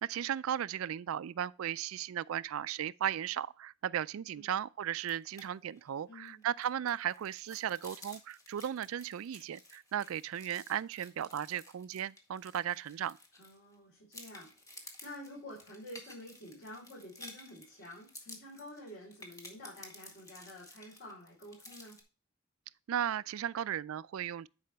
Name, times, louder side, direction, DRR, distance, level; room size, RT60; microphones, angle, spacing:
voice 1, 0.0-13.2 22.9-24.5, right 10 dB, 70° right, 0.3 m, -36 dB
sound 1, 5.0-5.5 5.8-5.9 6.3-13.7 14.1-22.0, left 1 dB, 15° left, 1.7 m, -53 dB
voice 2, 6.1-6.4 13.4-22.0, left 1 dB, 55° left, 4.1 m, -49 dB
10.5 x 4.9 x 3.4 m
head